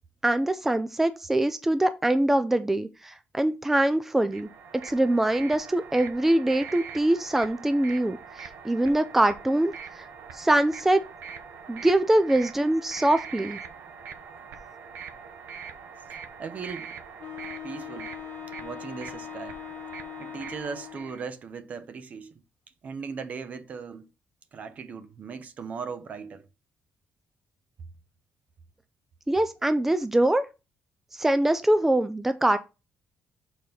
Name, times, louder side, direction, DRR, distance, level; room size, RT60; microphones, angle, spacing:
voice 1, 0.2-10.1 10.3-11.0 11.7-13.6 29.3-30.4 31.1-32.6, right 1 dB, 10° right, 0.4 m, -23 dB
sound 1, 4.2-21.2, right 6 dB, 80° right, 1.0 m, -43 dB
voice 2, 16.1-16.9 17.6-18.1 18.6-19.6 20.2-22.3 22.8-24.1 24.5-26.5, right 5 dB, 45° right, 0.8 m, -38 dB
Wind instrument woodwind instrument, 17.2-21.3, left 12 dB, 70° left, 1.1 m, -41 dB
6.8 x 4.2 x 3.9 m
cardioid pair, 130°, 3 cm